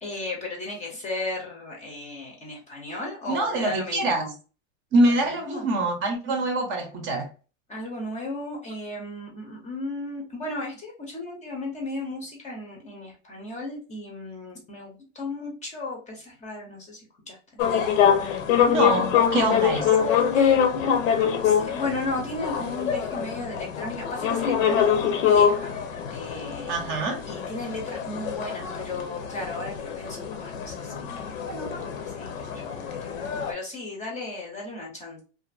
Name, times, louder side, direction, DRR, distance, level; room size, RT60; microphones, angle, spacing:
voice 1, 0.0-4.3 5.1-5.7 7.7-17.4 20.1-25.8 26.1-26.7 27.1-35.2, left 2 dB, 20° left, 0.6 m, -35 dB
voice 2, 3.3-4.3 4.9-7.3 18.6-19.9 26.7-27.2, right 2 dB, 30° right, 0.6 m, -25 dB
sound 1, 17.6-33.5, left 8 dB, 85° left, 0.8 m, -24 dB
2.5 x 2.5 x 2.4 m
supercardioid pair, 135°, 38 cm